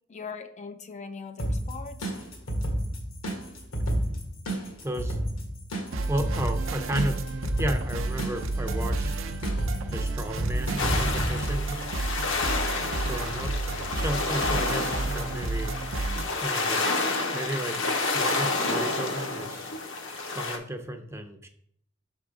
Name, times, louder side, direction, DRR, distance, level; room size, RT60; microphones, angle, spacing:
voice 1, 0.1-2.1, left 5 dB, 35° left, 7 dB, 0.4 m, -40 dB
sound 1, 1.4-11.3, right 1 dB, 80° left, 1.5 m, -31 dB
voice 2, 4.8-5.2 6.1-7.2 7.6-9.1 9.9-11.9 13.0-13.5 13.9-15.8 16.4-16.8 17.3-17.8 18.1-19.7 20.2-21.5, right 1 dB, 15° right, 6 dB, 0.6 m, -33 dB
sound 2, 5.9-16.2, right 2 dB, 70° right, 0.6 m, -31 dB
sound 3, 10.8-20.6, left 3 dB, 65° left, 0.9 m, -29 dB
6.5 x 3.7 x 4.8 m, 0.66 s
head